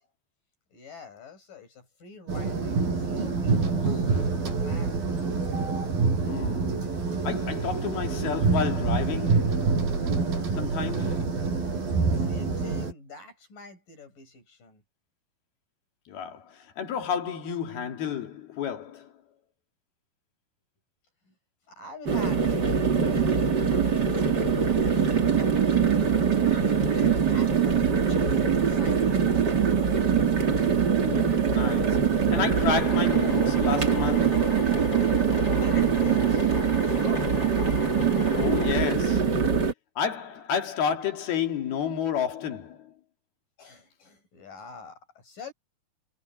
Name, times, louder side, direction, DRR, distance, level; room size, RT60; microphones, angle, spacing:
voice 1, 0.7-5.0 11.0-11.1 12.1-14.8 21.3-21.4 21.7-23.5 23.8-29.9 35.6-37.4 43.6-45.5, left 3 dB, 60° left, 9.2 m, -46 dB
sound 1, 2.3-12.9, right 4 dB, 70° right, 8.8 m, -26 dB
voice 2, 6.2-6.9 7.2-9.7 10.5-11.4 16.1-19.1 31.0-34.6 38.4-39.5 40.0-42.9, left 7 dB, 80° left, 4.4 m, -31 dB
sound 2, 22.1-39.7, right 6 dB, 30° right, 2.5 m, -23 dB
Drill, 32.7-38.7, left 5 dB, 45° left, 3.7 m, -40 dB
omnidirectional pair, 4.4 m